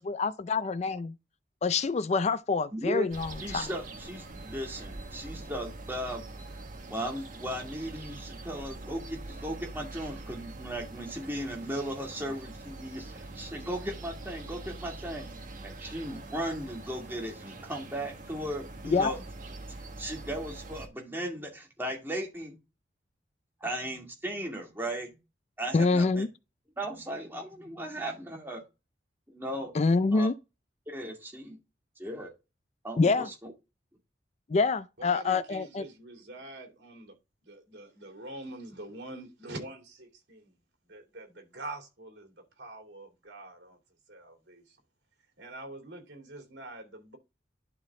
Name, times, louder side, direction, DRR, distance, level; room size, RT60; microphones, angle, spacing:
voice 1, 0.1-1.2 1.6-3.7 18.8-19.1 25.7-26.3 29.7-30.3 33.0-33.3 34.5-35.9, left 4 dB, 40° left, 0.4 m, -26 dB
voice 2, 2.7-3.1 3.4-6.2 6.9-19.2 19.7-22.6 23.6-25.2 25.6-26.2 26.8-28.6 29.3-29.7 30.1-30.3 30.9-31.6 32.0-32.3 32.8-33.5, right 1 dB, 15° right, 2.2 m, -36 dB
sound 1, 3.1-20.9, right 2 dB, 50° right, 1.5 m, -44 dB
voice 3, 35.0-37.1 37.4-40.5 40.9-43.8 44.1-44.8 45.4-47.2, right 2 dB, 70° right, 2.9 m, -45 dB
11.5 x 3.9 x 3.6 m
head